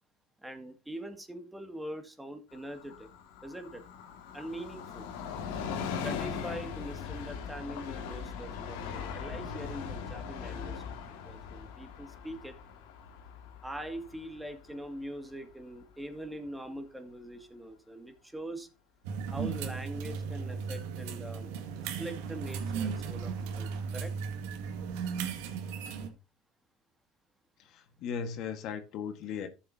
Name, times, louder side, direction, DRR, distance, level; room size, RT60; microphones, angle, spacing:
voice 1, 0.4-3.1 3.4-3.8 4.3-5.1 6.0-10.8 11.3-12.5 13.6-18.7 19.3-24.1, right 1 dB, 10° right, 2.2 m, -43 dB
Train, 2.5-15.8 16.2-16.3, left 6 dB, 80° left, 2.0 m, -40 dB
sound 1, 19.0-26.1, right 6 dB, 80° right, 1.9 m, -36 dB
voice 2, 27.6-29.5, left 7 dB, 60° left, 1.6 m, -37 dB
14.0 x 7.1 x 2.8 m
supercardioid pair, 90°, 0 cm